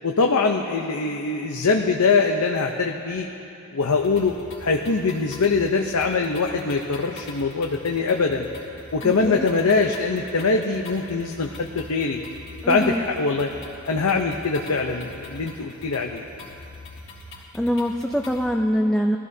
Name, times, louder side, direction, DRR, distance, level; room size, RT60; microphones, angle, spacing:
voice 1, 0.0-3.3 3.7-4.3 4.6-8.5 8.9-12.2 12.7-13.5 13.9-16.2, left 4 dB, 80° left, 2 dB, 0.7 m, -22 dB
sound 1, 3.8-18.5, left 2 dB, 60° left, 2.9 m, -43 dB
voice 2, 9.0-9.5 12.6-13.1 17.3-19.2, equal, 5° left, 2 dB, 0.4 m, -24 dB
22.0 x 15.0 x 2.7 m, 2.7 s
head